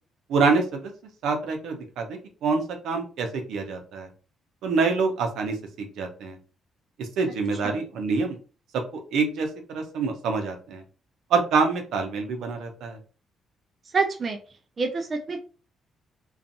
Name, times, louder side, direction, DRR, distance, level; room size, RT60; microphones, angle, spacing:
voice 1, 0.3-0.9 1.2-4.1 4.6-6.4 7.0-8.4 8.7-10.8 11.3-13.0, right 4 dB, 80° right, 4 dB, 0.7 m, -26 dB
voice 2, 13.9-14.4 14.8-15.4, right 4 dB, 40° right, 4 dB, 0.4 m, -27 dB
2.5 x 2.4 x 2.6 m, 0.36 s
cardioid pair, 90°, 0 cm